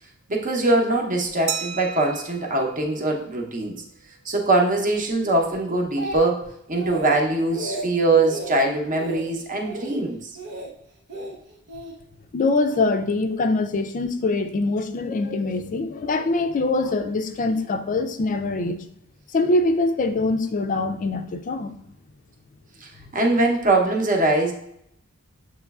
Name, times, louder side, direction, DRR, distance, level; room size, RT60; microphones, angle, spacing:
voice 1, 0.3-3.8 4.2-10.3 22.8-24.5, right 2 dB, 40° right, 1 dB, 0.8 m, -22 dB
Glass, 1.5-3.9, right 8 dB, 60° right, 0.4 m, -35 dB
Speech, 5.5-6.5 6.8-7.2 7.5-7.9 8.3-8.6 8.9-9.3 9.6-9.9 10.4-10.7 11.1-11.9 12.7-12.9, right 1 dB, 90° right, 0.8 m, -34 dB
voice 2, 12.3-18.8 19.3-21.7, left 2 dB, 40° left, 8 dB, 0.4 m, -23 dB
7.1 x 3.1 x 2.3 m, 0.75 s
head